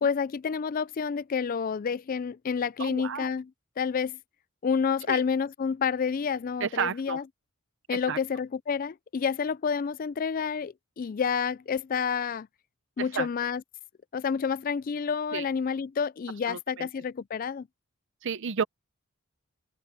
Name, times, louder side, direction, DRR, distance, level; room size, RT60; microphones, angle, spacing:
voice 1, 0.0-3.5 3.8-4.2 4.6-7.2 7.9-12.5 13.0-13.6 14.1-17.7, left 6 dB, 40° left, 0.3 m, -29 dB
voice 2, 2.8-3.3 5.1-5.2 6.6-7.2 7.9-8.2 13.0-13.3 15.3-15.5 16.5-16.9 18.2-18.6, right 6 dB, 60° right, 0.6 m, -32 dB
head